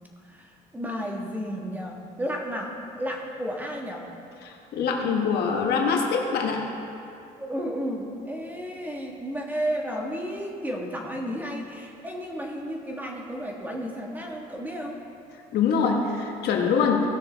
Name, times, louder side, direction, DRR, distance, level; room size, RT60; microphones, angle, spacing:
voice 1, 0.2-4.0 7.4-15.0, equal, 10° right, 0 dB, 1.4 m, -32 dB
voice 2, 4.4-6.7 15.5-17.1, left 5 dB, 75° left, 2 dB, 1.2 m, -24 dB
16.5 x 6.3 x 3.4 m, 2.6 s
cardioid pair, 110°, 17 cm